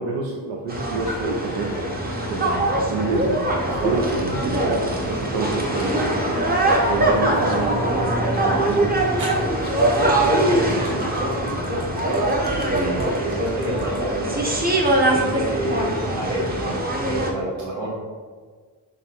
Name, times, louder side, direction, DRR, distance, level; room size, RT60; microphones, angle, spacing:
voice 1, 0.0-1.7 2.3-6.4 6.9-9.1 12.5-13.0 17.8-17.9, right 4 dB, 90° right, -1 dB, 0.5 m, -29 dB
sound 1, 0.7-17.3, right 1 dB, 20° right, 0.7 m, -22 dB
sound 2, 1.0-12.5, left 5 dB, 60° left, 0.5 m, -37 dB
sound 3, 5.1-5.7 6.4-6.5 8.4-8.5 9.2-15.4, right 1 dB, 40° right, 1.1 m, -40 dB
voice 2, 9.7-11.8 12.6-14.6 15.1-16.8 17.0-17.9, right 1 dB, 70° right, -6 dB, 1.4 m, -29 dB
6.0 x 2.2 x 2.8 m, 1.6 s
cardioid pair, 55°, 45 cm